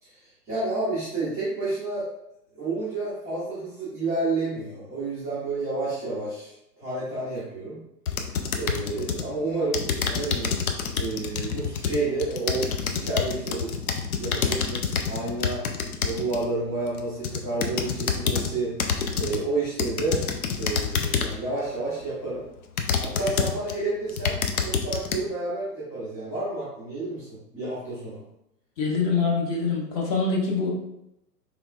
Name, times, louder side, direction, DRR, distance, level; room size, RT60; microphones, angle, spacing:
voice 1, 0.0-2.1 2.5-7.8 8.5-10.5 10.9-13.8 14.2-15.6 16.0-18.7 19.1-20.2 20.5-22.4 23.0-24.4 24.6-28.2, right 3 dB, 5° right, -15 dB, 0.4 m, -30 dB
sound 1, 8.1-9.3 9.7-16.5 17.0-18.5 18.8-19.4 19.8-21.4 22.0-22.1 22.8-23.7 24.1-25.2, left 6 dB, 60° left, 0.6 m, -27 dB
voice 2, 28.8-30.7, left 4 dB, 25° left, -2 dB, 0.7 m, -24 dB
4.0 x 3.3 x 2.3 m, 0.82 s
figure-of-eight pair, 110°, 49 cm